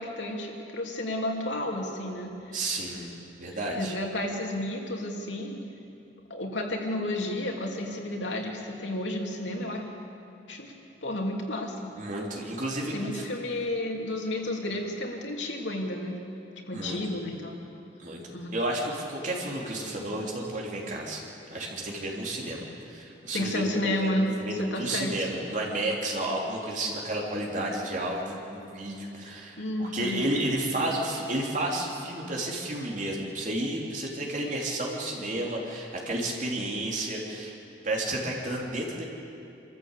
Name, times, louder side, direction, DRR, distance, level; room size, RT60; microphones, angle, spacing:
voice 1, 0.0-2.6 3.7-5.6 6.3-9.8 10.5-10.7 11.0-11.9 12.9-16.2 16.7-17.6 18.3-18.5 23.3-25.3 29.5-30.3, left 1 dB, 90° left, 1 dB, 2.9 m, -31 dB
voice 2, 2.5-3.1 3.4-3.9 12.0-13.2 14.3-14.4 16.7-17.2 18.0-21.2 21.5-24.1 24.4-37.5 37.8-39.0, right 1 dB, 45° right, -1 dB, 3.4 m, -32 dB
26.5 x 14.0 x 8.3 m, 2.8 s
head